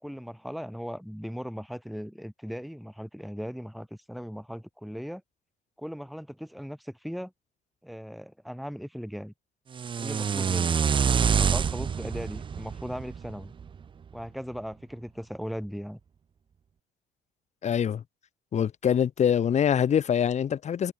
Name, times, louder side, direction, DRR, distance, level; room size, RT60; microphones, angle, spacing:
voice 1, 0.0-5.2 5.8-7.3 7.8-9.3 10.0-10.8 11.4-13.5 14.1-16.0, equal, ahead, 2.4 m, -38 dB
sound 1, 9.7-13.8, right 7 dB, 30° right, 0.6 m, -26 dB
voice 2, 17.6-18.0 18.5-20.9, left 8 dB, 40° left, 1.3 m, -24 dB
cardioid pair, 110°, 17 cm